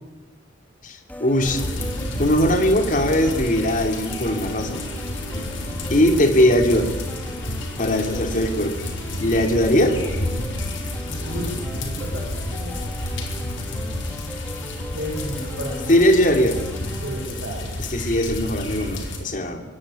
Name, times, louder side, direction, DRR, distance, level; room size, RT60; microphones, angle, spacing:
voice 1, 0.8-1.6 2.2-4.8 5.9-6.9 7.8-8.7 9.2-10.0 15.9-16.6 17.9-19.6, equal, 45° left, 6 dB, 2.9 m, -20 dB
sound 1, 1.1-17.3, equal, 10° left, 2.7 m, -38 dB
sound 2, 1.4-19.2, left 1 dB, 80° left, 5.0 m, -30 dB
voice 2, 5.1-5.5 11.1-12.8 14.9-16.1 17.0-17.7, equal, 60° right, -1 dB, 6.8 m, -33 dB
24.0 x 20.5 x 9.0 m, 1.1 s
head